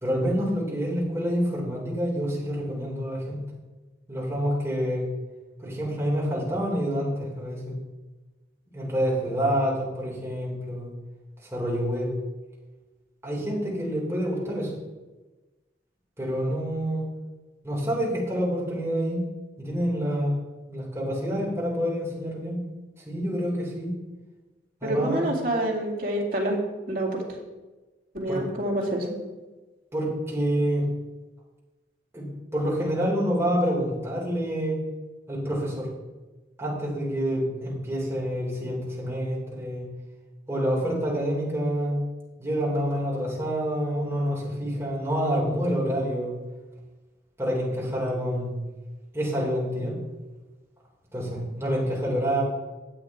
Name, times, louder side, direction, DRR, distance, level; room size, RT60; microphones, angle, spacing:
voice 1, 0.0-3.4 4.1-5.1 5.6-7.7 8.7-10.9 11.4-12.1 13.2-14.7 16.2-17.0 17.6-19.2 19.6-20.3 20.7-22.6 23.1-23.9 24.8-25.2 28.3-28.4 29.9-30.9 32.1-34.8 35.3-35.9 36.6-39.9 40.5-42.0 42.4-46.3 47.4-48.5 49.1-50.0 51.1-52.4, equal, 15° right, -5 dB, 3.1 m, -27 dB
voice 2, 24.8-26.6 26.9-27.2 28.1-29.1, right 1 dB, 50° right, -2 dB, 2.4 m, -27 dB
9.8 x 8.0 x 4.7 m, 1.2 s
head